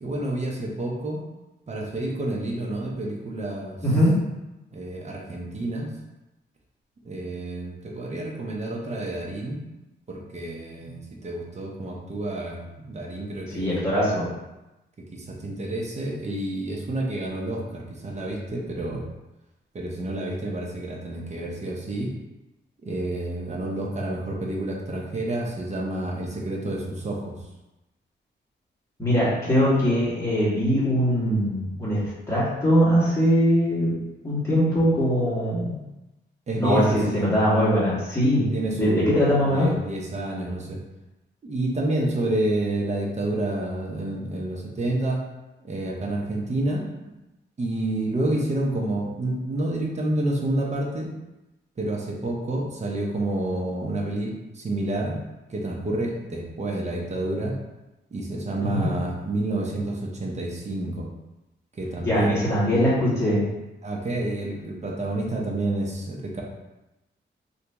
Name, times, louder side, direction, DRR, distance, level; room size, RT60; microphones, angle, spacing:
voice 1, 0.0-1.2 1.7-3.8 4.7-5.9 7.0-9.6 10.1-13.8 15.1-19.1 19.7-22.1 22.8-27.3 36.5-37.3 38.5-40.8 41.4-45.2 45.6-46.8 47.6-51.1 51.8-55.2 55.5-57.5 58.1-61.1 61.7-63.0 63.8-66.4, right 1 dB, 35° right, -1 dB, 0.7 m, -29 dB
voice 2, 13.5-14.3 29.0-32.0 32.3-35.7 36.5-38.4 38.7-39.7 58.6-58.9 62.0-63.4, equal, 15° left, -10 dB, 1.5 m, -21 dB
2.8 x 2.7 x 3.4 m, 1.0 s
cardioid pair, 105°, 19 cm